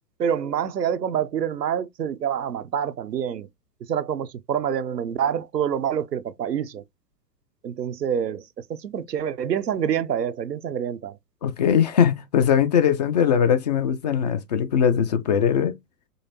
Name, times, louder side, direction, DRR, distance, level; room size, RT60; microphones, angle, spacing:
voice 1, 0.2-3.5 3.9-6.8 7.6-8.4 8.7-11.2, right 8 dB, 85° right, 0.7 m, -26 dB
voice 2, 11.4-15.8, left 8 dB, 30° left, 0.4 m, -20 dB
5.4 x 3.2 x 2.8 m
figure-of-eight pair, 105°, 48 cm